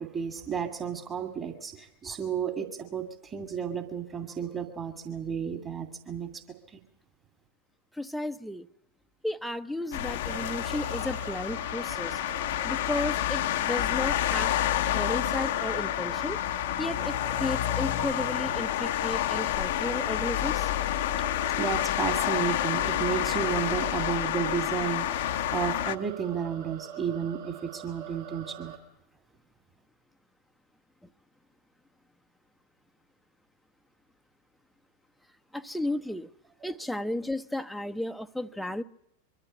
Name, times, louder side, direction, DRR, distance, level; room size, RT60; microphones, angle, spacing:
voice 1, 0.0-6.4 21.6-28.7, right 7 dB, 25° right, 6 dB, 2.3 m, -32 dB
voice 2, 8.0-8.7 9.2-12.2 12.6-14.5 14.9-16.4 16.8-20.7 35.5-36.3 36.6-38.8, left 1 dB, ahead, 7 dB, 0.8 m, -33 dB
sound 1, 9.9-26.0, left 13 dB, 55° left, 0.8 m, -29 dB
sound 2, 10.2-28.8, right 10 dB, 50° right, 4.5 m, -44 dB
23.5 x 13.5 x 9.7 m, 0.82 s
figure-of-eight pair, 90°, 0 cm